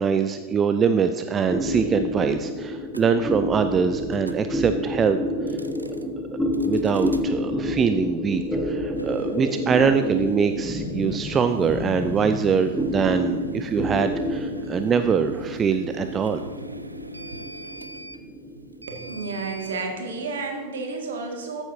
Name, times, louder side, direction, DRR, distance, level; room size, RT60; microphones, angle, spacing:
voice 1, 0.0-5.2 5.5-5.6 6.6-16.4, right 6 dB, 20° right, 9 dB, 0.4 m, -23 dB
sound 1, 1.5-20.3, left 1 dB, 5° left, 1.3 m, -29 dB
sound 2, 2.9-3.1 4.1-4.5 5.4-6.1 6.5-7.3 8.9-19.9, equal, 85° right, 0.4 m, -42 dB
voice 2, 18.9-21.6, right 3 dB, 60° right, 2 dB, 1.9 m, -31 dB
14.0 x 9.0 x 2.7 m, 1.5 s
figure-of-eight pair, 90°, 0 cm